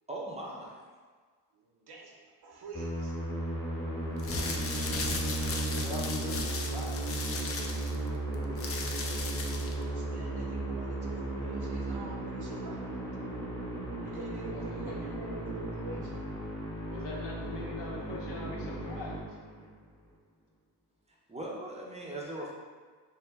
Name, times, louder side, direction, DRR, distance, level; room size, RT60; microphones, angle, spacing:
voice 1, 0.1-0.8 4.8-5.5 8.3-8.7 21.3-22.5, right 1 dB, 15° right, -3 dB, 0.6 m, -41 dB
voice 2, 1.5-3.2 9.5-13.0 13.9-16.1, right 2 dB, 60° right, -1 dB, 0.6 m, -46 dB
Musical instrument, 2.7-19.9, right 2 dB, 5° left, 0.9 m, -35 dB
sound 1, 4.1-9.8, left 3 dB, 35° left, 0.4 m, -37 dB
voice 3, 5.8-7.3 14.5-15.0 16.9-19.2, left 2 dB, 65° left, -3 dB, 0.7 m, -42 dB
2.4 x 2.0 x 3.4 m, 1.5 s
supercardioid pair, 40°, 45 cm